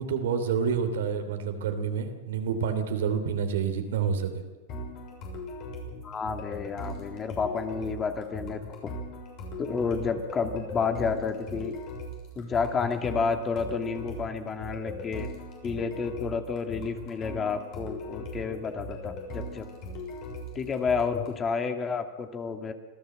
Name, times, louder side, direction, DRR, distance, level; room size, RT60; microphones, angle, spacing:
voice 1, 0.0-4.4, right 6 dB, 80° right, 7 dB, 3.1 m, -28 dB
Shaky Platforms, 4.7-21.4, left 1 dB, 45° left, 6.7 m, -39 dB
voice 2, 6.0-8.6 9.6-11.7 12.4-15.3 15.6-19.7 20.5-22.7, left 5 dB, 25° left, 6 dB, 2.4 m, -30 dB
26.0 x 14.5 x 7.9 m, 1.2 s
hypercardioid pair, 120°, 0 cm